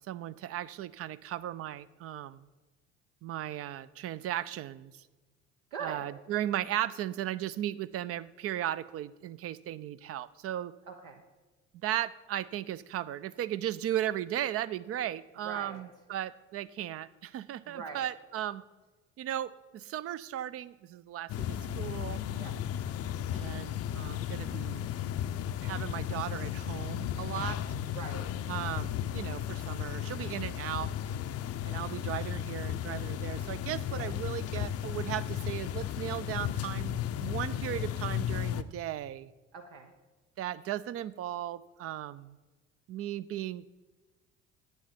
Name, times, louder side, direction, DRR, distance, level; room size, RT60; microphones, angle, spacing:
voice 1, 0.0-2.5 3.2-4.9 5.8-10.7 11.8-18.6 19.2-22.2 23.3-24.9 25.6-27.6 28.5-30.9 31.6-39.3 40.4-42.4 42.9-43.6, right 12 dB, 40° right, 16 dB, 0.4 m, -36 dB
voice 2, 5.7-6.1 10.9-11.2 15.4-15.8 17.7-18.1 22.3-22.5 27.9-28.3 33.9-34.1 39.5-39.9, right 5 dB, 70° right, 3 dB, 0.9 m, -42 dB
Spring morning atmosphere, 21.3-38.6, left 10 dB, 40° left, 0.6 m, -35 dB
10.5 x 8.9 x 4.3 m, 1.2 s
figure-of-eight pair, 55°, 37 cm